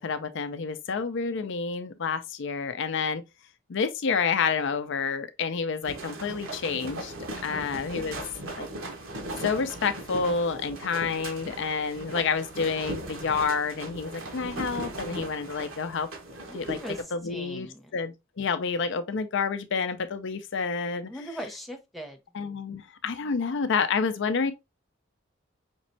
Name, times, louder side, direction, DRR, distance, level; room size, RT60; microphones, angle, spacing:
voice 1, 0.0-3.2 3.7-7.1 7.4-8.2 8.6-8.7 9.4-16.1 16.5-16.8 17.1-17.7 17.9-21.1 22.3-24.5, left 5 dB, 65° left, 0.5 m, -29 dB
sound 1, 5.8-17.0, right 1 dB, 80° right, 1.3 m, -38 dB
voice 2, 7.3-7.8 16.5-17.9 21.1-22.2, equal, ahead, 0.8 m, -40 dB
5.2 x 3.1 x 2.6 m
head